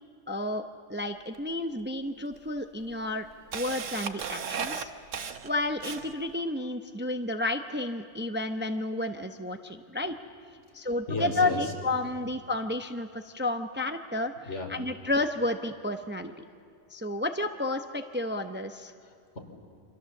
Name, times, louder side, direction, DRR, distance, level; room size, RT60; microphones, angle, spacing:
voice 1, 0.3-3.3 3.5-4.9 5.4-10.1 10.7-14.3 14.7-16.3 16.9-18.9, left 2 dB, 10° right, 7 dB, 0.7 m, -31 dB
Camera, 1.3-1.4 2.3-2.4 2.8-6.3, right 6 dB, 90° right, 1.4 m, -35 dB
voice 2, 10.8-11.7 14.5-14.7 19.0-19.4, left 3 dB, 70° left, 3 dB, 3.7 m, -35 dB
28.0 x 25.0 x 7.2 m, 2.4 s
omnidirectional pair, 1.3 m